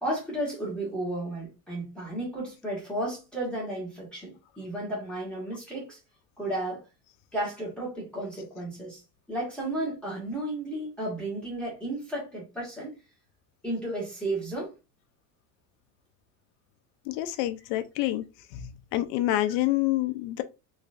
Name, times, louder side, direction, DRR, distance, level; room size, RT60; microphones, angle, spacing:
voice 1, 0.0-6.0 6.4-6.8 7.3-9.0 9.3-12.9 13.6-14.7, right 1 dB, ahead, 1.6 m, -33 dB
voice 2, 17.1-18.2 18.5-20.4, left 15 dB, 80° left, 0.7 m, -27 dB
4.0 x 3.1 x 2.5 m
cardioid pair, 155°, 44 cm